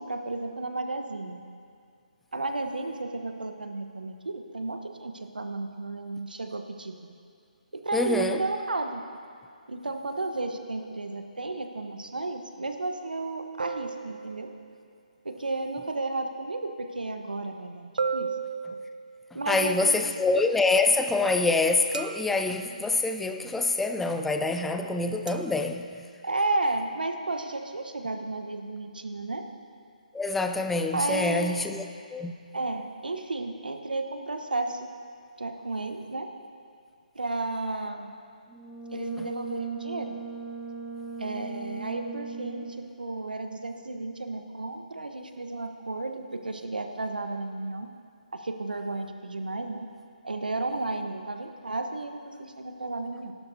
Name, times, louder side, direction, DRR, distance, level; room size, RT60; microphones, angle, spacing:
voice 1, 0.0-1.4 2.3-7.0 7.7-9.0 9.7-14.5 15.2-18.3 19.3-20.3 26.2-29.5 30.9-31.7 32.5-34.8 35.4-36.3 37.1-38.1 38.9-40.1 41.2-47.9 48.3-49.9 50.2-53.3, right 2 dB, 85° right, 5 dB, 1.2 m, -33 dB
voice 2, 7.9-8.4 19.5-25.9 30.1-32.3 39.2-39.3, left 3 dB, 5° left, 6 dB, 0.4 m, -26 dB
sound 1, 13.6-14.7 18.0-19.4 21.9-22.7 25.3-25.6, right 5 dB, 65° right, 0.8 m, -34 dB
Brass instrument, 38.5-42.8, right 3 dB, 15° right, 1.9 m, -38 dB
23.0 x 12.0 x 2.8 m, 2.2 s
figure-of-eight pair, 150°, 5 cm